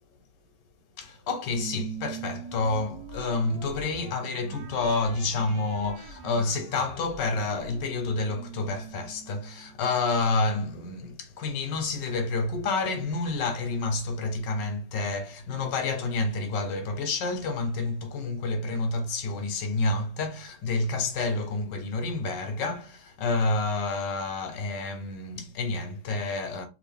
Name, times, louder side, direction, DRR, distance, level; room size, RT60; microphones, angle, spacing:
voice 1, 1.0-26.7, left 3 dB, 90° left, 1.5 m, -29 dB
sound 1, 1.5-10.3, right 6 dB, 90° right, 1.3 m, -43 dB
3.4 x 2.6 x 3.4 m
omnidirectional pair, 1.8 m